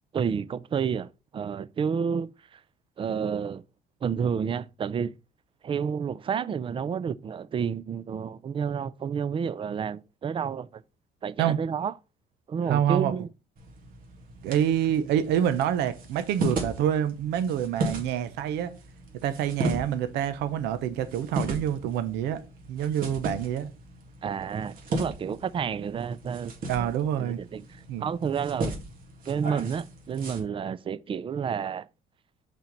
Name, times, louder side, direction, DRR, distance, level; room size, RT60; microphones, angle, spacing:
voice 1, 0.1-2.6 3.0-3.6 4.0-5.1 5.6-10.8 11.2-11.9 12.5-13.3 24.2-26.9 27.2-27.6 28.0-28.7 29.3-31.9, right 7 dB, 30° right, 0.4 m, -30 dB
voice 2, 12.7-13.1 14.4-18.7 19.2-22.4 22.7-23.7 26.7-27.4 27.9-28.1, right 10 dB, 85° right, 0.7 m, -27 dB
sound 1, 13.6-30.4, right 2 dB, 55° right, 2.0 m, -36 dB
5.7 x 4.5 x 5.2 m
cardioid pair, 110°, 17 cm